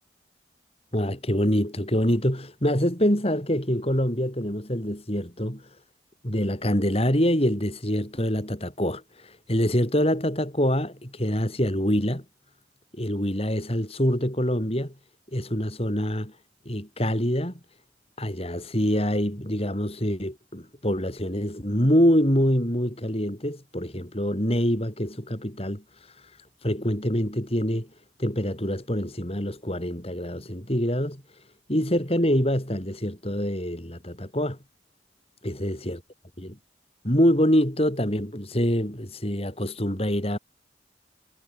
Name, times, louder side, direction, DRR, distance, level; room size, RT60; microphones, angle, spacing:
voice 1, 0.9-5.6 6.2-9.0 9.5-12.2 12.9-14.9 15.3-16.3 16.7-17.5 18.2-25.8 26.6-27.9 28.2-31.2 31.7-34.6 35.4-36.0 36.4-36.6 37.0-40.4, equal, 35° left, 7.4 m, -25 dB
head